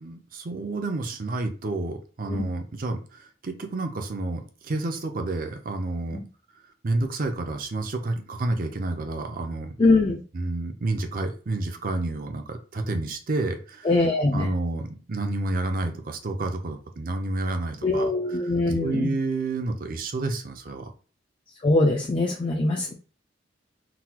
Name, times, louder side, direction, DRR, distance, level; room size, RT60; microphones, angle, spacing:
voice 1, 0.0-6.2 6.8-9.8 10.3-13.9 14.3-18.5 18.8-20.9, right 2 dB, 50° right, 6 dB, 0.5 m, -30 dB
voice 2, 9.8-10.2 13.8-14.5 17.8-19.1 21.6-22.9, left 2 dB, 30° left, 0 dB, 0.4 m, -22 dB
4.0 x 2.3 x 2.8 m, 0.38 s
head